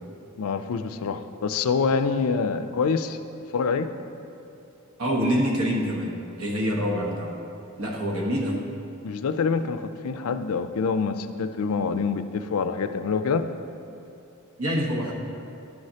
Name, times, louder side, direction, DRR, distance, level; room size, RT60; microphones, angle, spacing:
voice 1, 0.4-3.2 3.5-3.9 9.0-13.5, left 5 dB, 85° left, 9 dB, 0.4 m, -26 dB
voice 2, 5.0-6.1 6.4-7.4 7.8-8.6 14.6-15.1, equal, 85° right, -1 dB, 1.3 m, -25 dB
12.0 x 6.4 x 2.8 m, 2.8 s
head